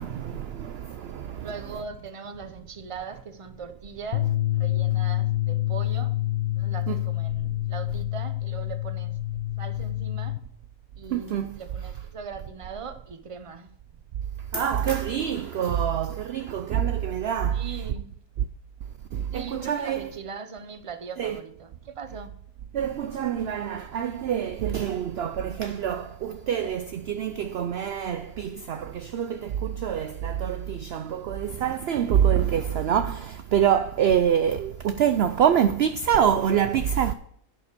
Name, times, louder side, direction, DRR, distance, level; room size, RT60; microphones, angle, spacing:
voice 1, 0.0-1.5 6.9-7.0 11.1-11.6 14.5-17.6 19.1-20.0 21.2-21.4 22.7-37.1, right 9 dB, 65° right, 0.6 m, -26 dB
voice 2, 1.4-6.2 6.6-9.2 9.6-10.4 11.0-13.7 17.5-18.1 19.3-22.4, right 5 dB, 30° right, 0.7 m, -40 dB
sound 1, 4.1-10.4, left 16 dB, 80° left, 1.3 m, -27 dB
11.0 x 7.0 x 6.7 m
omnidirectional pair, 1.5 m